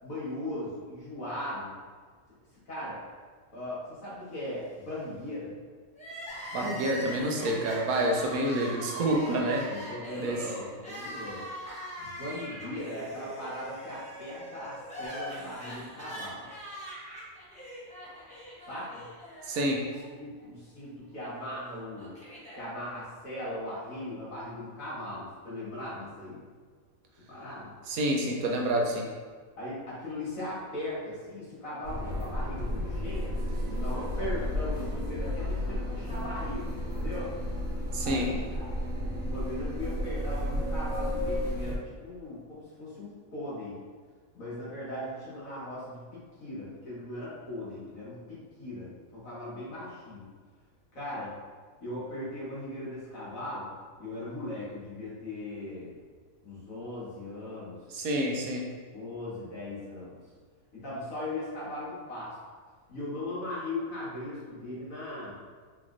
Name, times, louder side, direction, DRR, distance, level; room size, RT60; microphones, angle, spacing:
voice 1, 0.0-1.8 2.7-3.0 3.5-5.5 9.7-11.4 12.0-16.5 18.7-19.0 19.8-22.1 22.6-26.4 27.3-27.7 29.6-33.3 33.7-37.3 38.0-38.7 39.2-43.8 44.3-50.3 50.9-51.3 51.8-53.7 54.0-56.0 56.4-57.8 58.9-60.2 60.7-62.4 62.9-65.4, left 1 dB, 75° left, -10 dB, 2.0 m, -38 dB
Crying sobbing, 5.9-20.1 20.4-20.5 21.5-22.6, equal, 5° left, 0.8 m, -42 dB
voice 2, 6.5-9.7 10.2-10.4 19.5-19.8 27.9-29.1 37.9-38.3 57.9-58.7, right 1 dB, 90° right, 1 dB, 1.1 m, -28 dB
sound 1, 31.8-41.8, left 1 dB, 65° right, 1.2 m, -32 dB
4.2 x 3.2 x 2.5 m, 1.5 s
omnidirectional pair, 1.4 m